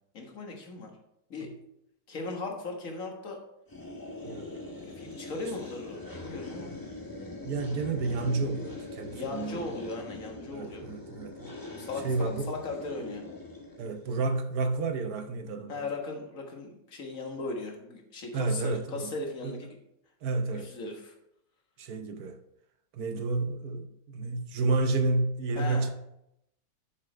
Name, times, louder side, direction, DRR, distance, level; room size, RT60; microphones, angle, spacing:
voice 1, 0.1-0.9 1.3-1.5 2.1-3.4 5.0-6.8 9.1-10.9 11.8-13.2 15.7-19.8 20.6-21.1 25.6-25.9, left 3 dB, 50° left, 1.9 m, -38 dB
sound 1, 3.7-14.1, left 2 dB, 15° left, 1.2 m, -42 dB
voice 2, 4.2-4.5 7.4-9.7 10.5-11.5 12.0-12.5 13.8-15.7 18.3-19.1 19.4-19.6 20.2-20.7 21.8-22.4 22.9-25.9, right 3 dB, 65° right, 1.2 m, -30 dB
7.3 x 6.6 x 5.1 m
omnidirectional pair, 1.9 m